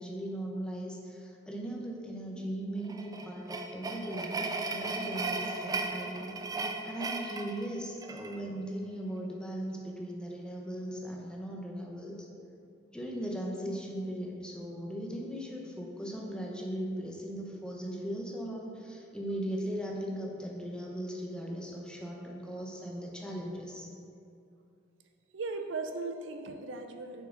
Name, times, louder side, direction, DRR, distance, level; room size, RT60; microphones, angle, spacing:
voice 1, 0.0-6.4 6.8-12.3 12.9-23.9, right 1 dB, 5° left, -1 dB, 0.8 m, -38 dB
sound 1, 2.9-8.4, right 3 dB, 20° right, 0.4 m, -36 dB
voice 2, 25.3-27.3, right 3 dB, 75° right, 5 dB, 0.5 m, -37 dB
7.2 x 5.6 x 3.8 m, 2.6 s
head